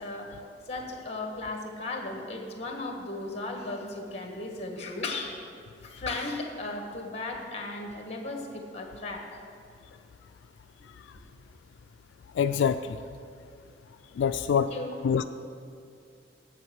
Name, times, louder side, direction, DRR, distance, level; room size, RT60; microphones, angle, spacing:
voice 1, 0.0-5.4 5.8-9.4 14.5-15.0, left 2 dB, 35° left, 2 dB, 1.5 m, -36 dB
voice 2, 12.4-13.0 14.2-14.7 15.0-15.2, left 7 dB, 90° left, 9 dB, 0.3 m, -25 dB
7.8 x 7.6 x 8.0 m, 2.4 s
head